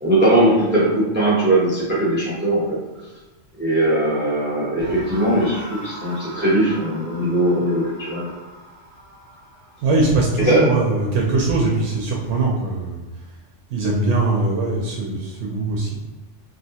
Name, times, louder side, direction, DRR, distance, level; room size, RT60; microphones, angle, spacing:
voice 1, 0.0-2.8 3.6-8.3 10.4-10.8, right 1 dB, 10° right, -7 dB, 0.7 m, -19 dB
sound 1, 4.8-11.9, right 1 dB, 45° right, 0.7 m, -40 dB
voice 2, 9.8-13.0 13.7-16.0, right 2 dB, 80° right, -2 dB, 0.9 m, -21 dB
3.2 x 2.6 x 2.7 m, 1.1 s
omnidirectional pair, 1.3 m